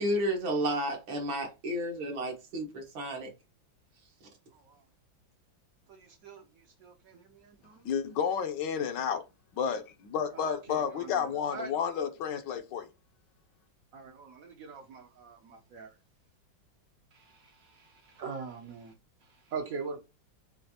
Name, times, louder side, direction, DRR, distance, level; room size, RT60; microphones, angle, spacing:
voice 1, 0.0-3.3, equal, 85° right, 2.2 m, -32 dB
voice 2, 4.5-4.8 5.9-7.9 10.3-12.0 13.9-15.9 17.1-18.9 19.2-20.0, right 5 dB, 70° right, 0.8 m, -43 dB
voice 3, 7.8-9.2 9.5-12.9, left 7 dB, 75° left, 1.2 m, -31 dB
6.5 x 2.4 x 2.8 m
omnidirectional pair, 2.1 m